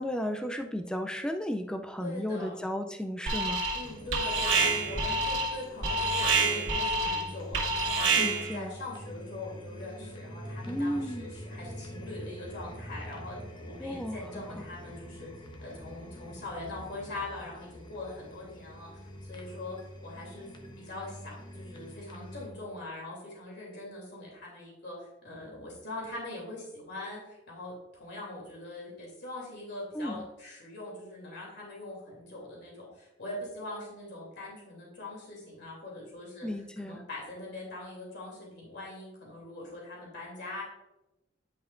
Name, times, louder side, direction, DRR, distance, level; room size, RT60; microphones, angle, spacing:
voice 1, 0.0-3.7 8.2-8.8 10.7-11.3 13.8-14.4 29.9-30.2 36.4-37.0, equal, 5° left, 5 dB, 0.4 m, -34 dB
voice 2, 2.0-2.5 3.7-13.4 13.6-15.3 15.6-19.0 19.3-19.8 20.0-20.5 20.8-40.6, left 2 dB, 65° left, -3 dB, 2.8 m, -42 dB
Alarm, 3.3-8.6, right 3 dB, 90° right, 2.0 m, -27 dB
sound 1, 3.8-22.5, equal, 25° left, 0.9 m, -45 dB
10.0 x 5.6 x 2.5 m, 0.95 s
head